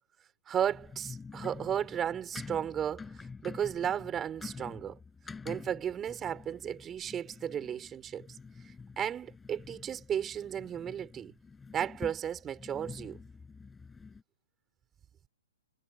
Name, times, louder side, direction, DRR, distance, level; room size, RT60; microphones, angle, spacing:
voice 1, 0.5-5.0 5.4-8.3 9.0-11.3 11.7-13.2, right 9 dB, 20° right, 4.9 m, -34 dB
sound 1, 0.6-14.2, left 4 dB, 10° left, 7.1 m, -47 dB
figure-of-eight pair, 120°, 0 cm